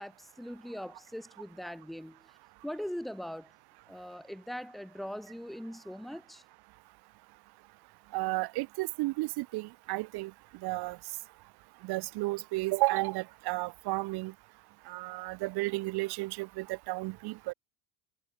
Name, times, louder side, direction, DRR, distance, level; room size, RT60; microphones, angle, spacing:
voice 1, 0.0-2.3 2.6-3.5 3.9-6.4, equal, ahead, 4.2 m, -41 dB
voice 2, 8.1-10.3 10.6-11.0 11.8-14.3 14.9-17.5, right 22 dB, 55° right, 6.0 m, -32 dB
cardioid pair, 175°, 45 cm